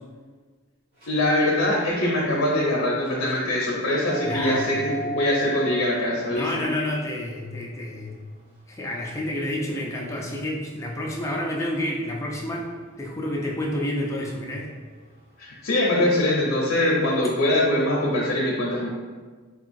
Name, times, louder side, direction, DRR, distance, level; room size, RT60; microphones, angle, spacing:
sound 1, 0.9-15.7, left 1 dB, 45° right, 1.5 m, -40 dB
voice 1, 1.1-6.6 15.4-18.9, left 1 dB, 70° left, -4 dB, 0.6 m, -23 dB
voice 2, 4.2-4.7 6.3-8.2 8.7-12.7 13.0-14.7, left 1 dB, 15° left, -1 dB, 0.3 m, -29 dB
3.7 x 2.3 x 2.5 m, 1.4 s
head